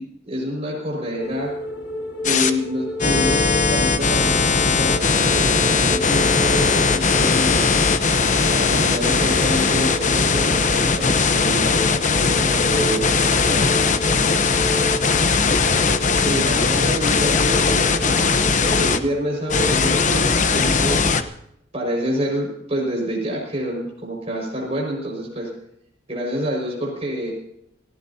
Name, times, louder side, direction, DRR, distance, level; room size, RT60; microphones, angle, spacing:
voice 1, 0.0-1.5 2.2-7.7 8.5-13.4 16.1-21.1 21.7-25.5 26.1-27.3, equal, 30° right, -1 dB, 5.6 m, -27 dB
sound 1, 1.2-20.1, left 1 dB, 90° left, 6.9 m, -32 dB
sound 2, 2.2-2.5 3.0-19.0 19.5-21.2, left 4 dB, 40° left, 0.9 m, -19 dB
voice 2, 12.7-15.1, right 1 dB, 50° right, 0 dB, 5.5 m, -40 dB
27.5 x 15.5 x 2.8 m, 0.77 s
head